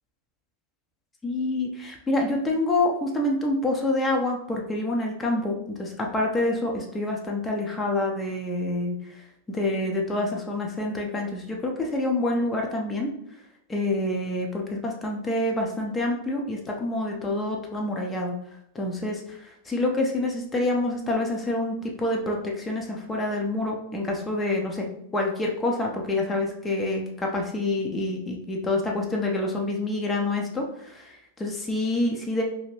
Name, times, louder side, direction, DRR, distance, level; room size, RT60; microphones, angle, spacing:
voice 1, 1.2-8.9 9.5-13.1 13.7-18.4 18.7-24.9 25.1-32.4, left 2 dB, 15° left, 0 dB, 0.5 m, -27 dB
2.8 x 2.7 x 3.0 m, 0.76 s
figure-of-eight pair, 90°, 0 cm